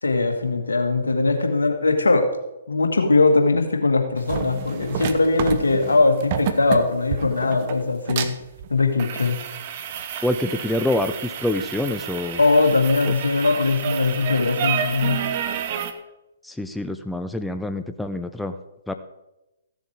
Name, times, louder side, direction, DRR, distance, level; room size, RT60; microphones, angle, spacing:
voice 1, 0.0-2.3 2.7-8.3 8.7-9.4 12.4-15.2, left 3 dB, 80° left, 4 dB, 1.8 m, -20 dB
sound 1, 4.2-15.9, right 8 dB, 45° right, 0.9 m, -30 dB
voice 2, 10.2-12.4 13.1-13.2 16.4-18.5 18.9-19.0, left 1 dB, 5° left, 7 dB, 0.5 m, -26 dB
14.5 x 7.1 x 4.7 m, 0.96 s
figure-of-eight pair, 130°, 0 cm